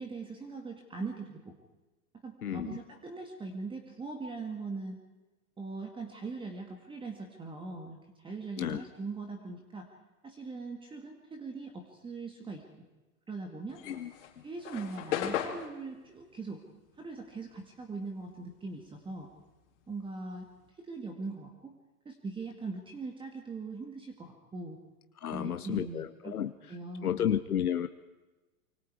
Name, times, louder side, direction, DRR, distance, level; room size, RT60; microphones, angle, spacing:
voice 1, 0.0-1.6 2.2-5.0 5.6-8.0 8.2-9.9 10.2-12.6 13.3-13.8 14.4-16.6 17.0-19.3 19.9-20.5 20.8-21.7 22.1-24.8 25.3-26.4 26.7-27.3, right 3 dB, 10° right, 4 dB, 2.1 m, -41 dB
voice 2, 2.4-2.8 8.6-8.8 13.8-14.1 25.2-26.5 27.0-27.9, left 9 dB, 90° left, 10 dB, 1.1 m, -32 dB
sound 1, 13.7-18.4 18.7-20.7, left 10 dB, 55° left, 3.6 m, -38 dB
26.0 x 24.5 x 4.8 m, 1.1 s
hypercardioid pair, 130°, 43 cm